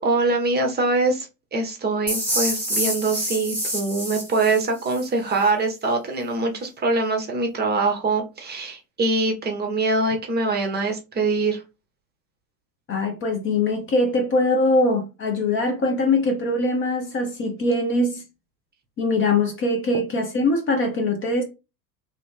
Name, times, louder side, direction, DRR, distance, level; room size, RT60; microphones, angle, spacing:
voice 1, 0.0-11.6, right 3 dB, 20° right, 0.8 m, -23 dB
sound 1, 2.1-5.1, equal, 5° left, 1.2 m, -27 dB
voice 2, 12.9-18.2 19.0-21.4, left 2 dB, 25° left, 0.6 m, -22 dB
2.7 x 2.5 x 3.6 m
figure-of-eight pair, 85°, 50 cm